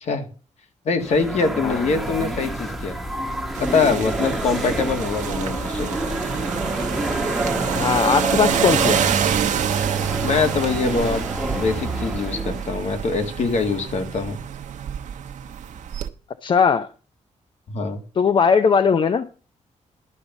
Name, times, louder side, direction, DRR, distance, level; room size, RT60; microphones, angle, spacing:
voice 1, 0.9-3.0 3.6-6.2 10.2-11.2 11.5-14.4 17.7-18.0, left 4 dB, 60° left, 6 dB, 1.8 m, -23 dB
sound 1, 1.0-12.6, right 1 dB, ahead, 1.1 m, -28 dB
sound 2, 3.5-16.1, right 8 dB, 75° right, 1.0 m, -27 dB
voice 2, 7.7-9.0 16.4-16.9 18.2-19.3, left 6 dB, 40° left, 11 dB, 0.5 m, -18 dB
12.0 x 5.2 x 7.1 m, 0.37 s
cardioid pair, 135°, 13 cm